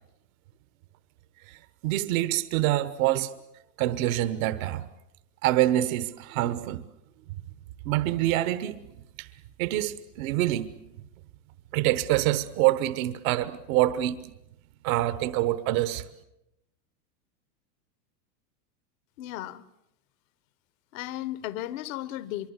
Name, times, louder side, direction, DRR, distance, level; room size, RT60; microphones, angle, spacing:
voice 1, 1.5-3.4 3.8-4.9 5.4-6.8 7.8-9.3 9.6-11.0 11.7-14.3 14.8-16.1, right 15 dB, 60° right, 1.2 m, -26 dB
voice 2, 19.2-19.6 20.9-22.5, left 14 dB, 60° left, 1.3 m, -35 dB
25.0 x 23.5 x 8.2 m
supercardioid pair, 120°, 46 cm